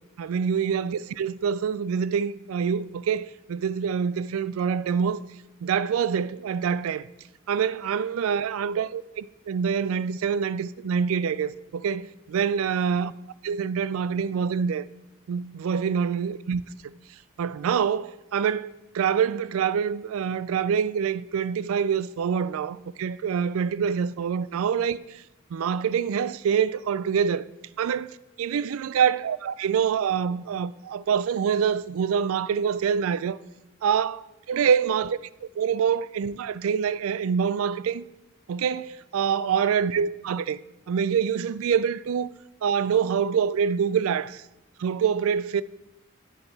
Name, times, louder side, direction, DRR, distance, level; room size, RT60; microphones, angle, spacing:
voice 1, 0.2-5.2 5.6-7.1 7.5-13.1 13.4-14.9 15.3-16.6 17.4-25.2 25.5-27.4 27.8-33.4 33.8-38.0 38.5-40.6 40.9-42.3 42.6-44.4 44.8-45.6, right 7 dB, 70° right, 0.3 m, -26 dB
9.2 x 6.8 x 4.0 m
head